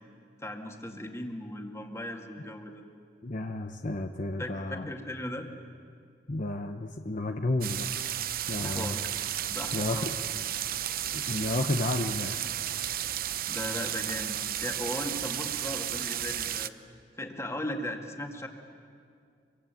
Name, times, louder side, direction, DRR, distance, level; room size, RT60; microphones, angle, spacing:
voice 1, 0.4-2.8 4.4-5.5 8.6-9.0 9.5-10.1 13.5-16.7 17.2-18.5, left 1 dB, 15° left, 3 dB, 2.2 m, -37 dB
voice 2, 3.2-4.9 6.3-7.9 8.5-9.0 9.7-10.1 11.1-12.3, left 2 dB, 45° left, 6 dB, 0.9 m, -31 dB
sound 1, 7.6-16.7, right 11 dB, 55° right, 0.7 m, -33 dB
26.0 x 23.5 x 9.2 m, 2.3 s
head